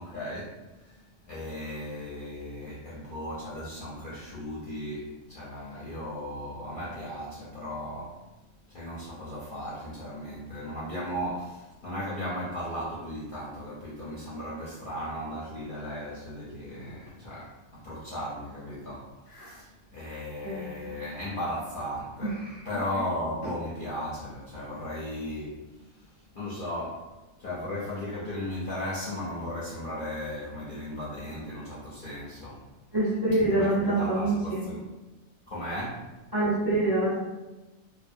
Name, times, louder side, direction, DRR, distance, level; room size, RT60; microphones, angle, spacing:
voice 1, 0.0-8.2 8.7-22.4 22.6-27.1 27.4-32.6 33.5-34.8 35.5-36.1, left 1 dB, 55° left, -8 dB, 0.6 m, -36 dB
voice 2, 22.2-22.5 32.9-34.6 36.3-37.2, right 2 dB, 25° right, -8 dB, 0.6 m, -26 dB
2.5 x 2.2 x 2.6 m, 1.1 s
omnidirectional pair, 1.4 m